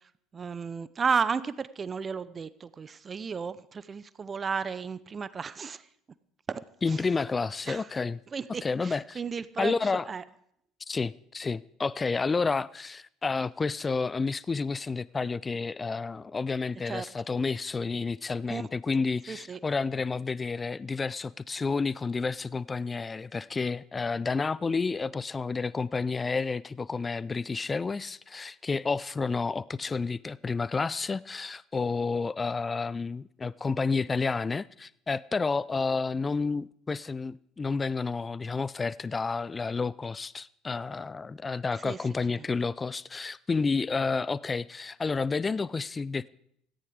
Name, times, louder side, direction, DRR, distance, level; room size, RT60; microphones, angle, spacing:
voice 1, 0.3-5.8 6.5-6.6 7.7-7.8 8.3-9.7 10.1-10.2 16.9-17.0 18.5-18.6 19.3-19.6 41.8-42.0, right 5 dB, 30° right, 0.8 m, -33 dB
voice 2, 6.8-8.2 8.5-9.2 9.6-10.1 10.9-46.3, left 4 dB, 25° left, 0.5 m, -30 dB
17.0 x 14.0 x 5.0 m
figure-of-eight pair, 60°, 0 cm